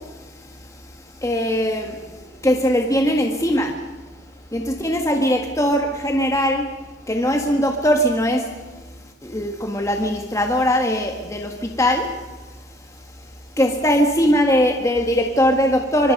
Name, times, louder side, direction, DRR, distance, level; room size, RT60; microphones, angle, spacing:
voice 1, 1.2-2.0 2.4-3.7 4.5-6.6 7.1-8.4 9.2-12.1 13.6-16.1, equal, 15° left, 2 dB, 1.7 m, -20 dB
25.0 x 24.5 x 5.5 m, 1.3 s
head